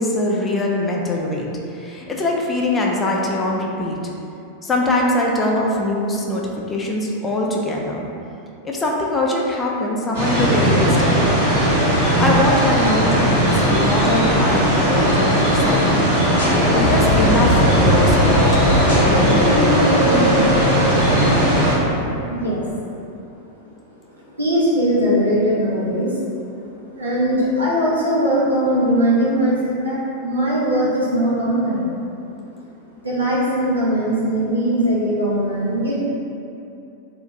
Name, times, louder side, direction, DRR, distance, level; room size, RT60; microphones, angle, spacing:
voice 1, 0.0-4.0 4.6-8.1 8.6-11.5 12.2-16.1 16.7-19.6, left 1 dB, 15° left, -2 dB, 0.3 m, -22 dB
sound 1, 10.1-21.7, equal, 60° right, 1.0 m, -18 dB
sound 2, 16.4-22.3, equal, 65° left, 0.6 m, -20 dB
voice 2, 22.3-22.6 24.1-26.2 26.9-31.9 33.0-36.0, equal, 80° right, -7 dB, 0.4 m, -20 dB
2.1 x 2.1 x 2.7 m, 2.7 s
figure-of-eight pair, 90°, 0 cm